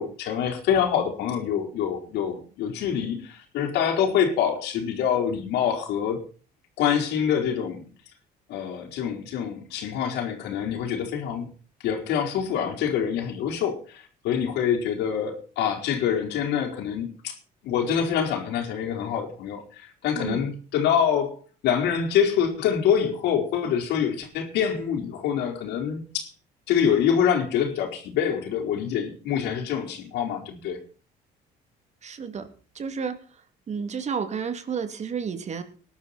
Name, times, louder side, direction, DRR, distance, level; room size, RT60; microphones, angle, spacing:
voice 1, 0.0-6.2 6.8-7.8 8.5-11.5 11.8-17.4 17.6-21.4 21.6-26.3 26.7-30.8, left 8 dB, 85° left, 3 dB, 4.6 m, -25 dB
voice 2, 32.0-32.5 32.7-33.1 33.7-35.6, right 6 dB, 40° right, 9 dB, 2.8 m, -31 dB
20.0 x 12.0 x 4.4 m, 0.38 s
cardioid pair, 110°, 17 cm